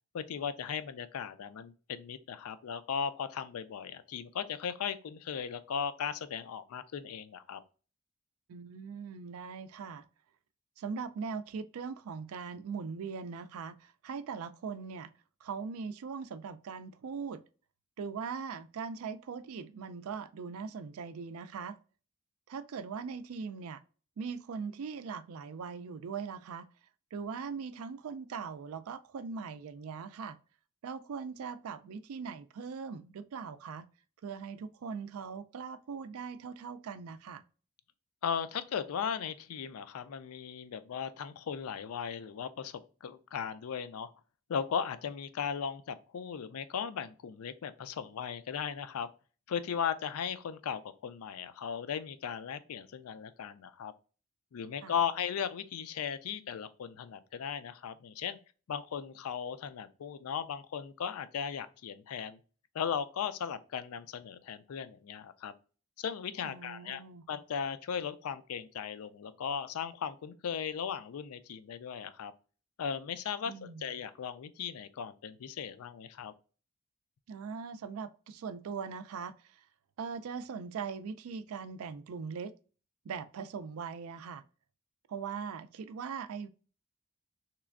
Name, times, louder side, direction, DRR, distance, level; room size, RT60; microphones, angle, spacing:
voice 1, 0.1-7.6 38.2-44.1 44.5-49.1 49.5-53.9 54.5-58.4 58.7-62.4 62.7-65.5 66.0-67.0 67.3-72.3 72.8-76.3, left 7 dB, 90° left, 0.4 m, -37 dB
voice 2, 8.5-10.0 10.8-15.1 15.4-17.4 18.0-21.8 22.5-23.8 24.2-26.7 27.1-30.4 30.8-33.9 34.2-37.4 54.8-54.9 66.4-67.2 73.4-73.8 77.3-79.6 80.0-82.5 83.0-84.4 85.1-86.5, right 5 dB, 85° right, 0.4 m, -40 dB
3.3 x 3.0 x 2.4 m
head